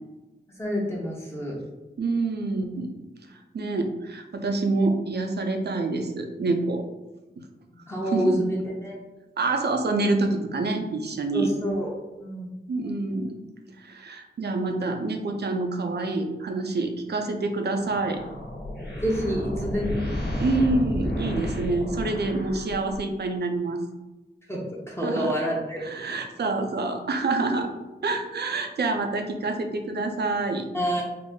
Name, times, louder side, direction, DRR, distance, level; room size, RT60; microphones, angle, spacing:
voice 1, 0.6-1.5 7.9-9.0 11.3-11.9 12.2-12.5 19.0-20.0 24.5-24.6 24.9-25.8 30.7-31.0, equal, 15° left, -4 dB, 0.8 m, -27 dB
voice 2, 2.0-2.9 3.3-6.8 8.0-8.4 9.4-11.5 12.7-13.4 13.8-18.2 20.4-23.8 25.0-25.4 25.8-27.7 28.0-30.7, right 3 dB, 70° right, 5 dB, 0.5 m, -27 dB
sound 1, 17.8-23.2, left 1 dB, 65° left, 1.1 m, -32 dB
3.8 x 2.1 x 3.6 m, 1.1 s
wide cardioid pair, 75°, 18 cm